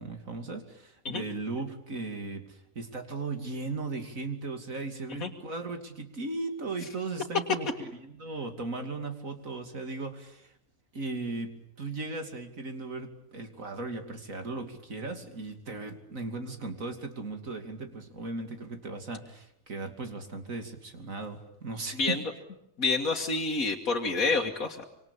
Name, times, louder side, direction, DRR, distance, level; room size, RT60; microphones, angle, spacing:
voice 1, 0.0-10.5 10.9-22.2, right 3 dB, 70° right, 6 dB, 3.2 m, -37 dB
voice 2, 22.8-24.8, left 3 dB, 80° left, 1 dB, 2.3 m, -28 dB
26.0 x 26.0 x 8.7 m, 0.76 s
omnidirectional pair, 1.4 m